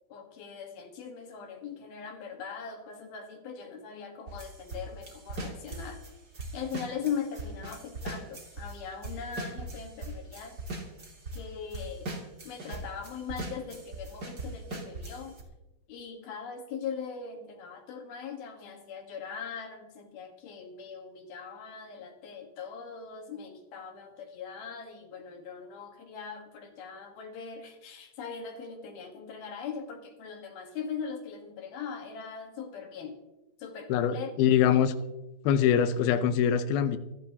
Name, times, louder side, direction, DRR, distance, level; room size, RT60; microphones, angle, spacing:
voice 1, 0.1-6.0 6.5-10.6 11.3-12.1 12.4-15.4 15.9-33.2 33.6-34.4 34.7-34.8, left 6 dB, 60° left, 4 dB, 3.0 m, -40 dB
sound 1, 4.3-8.8 9.0-11.4 11.7-15.4, right 2 dB, 30° right, 2.0 m, -40 dB
voice 2, 33.9-34.9 35.4-37.0, left 9 dB, 80° left, 9 dB, 2.2 m, -24 dB
25.5 x 13.0 x 2.9 m, 0.97 s
omnidirectional pair, 5.5 m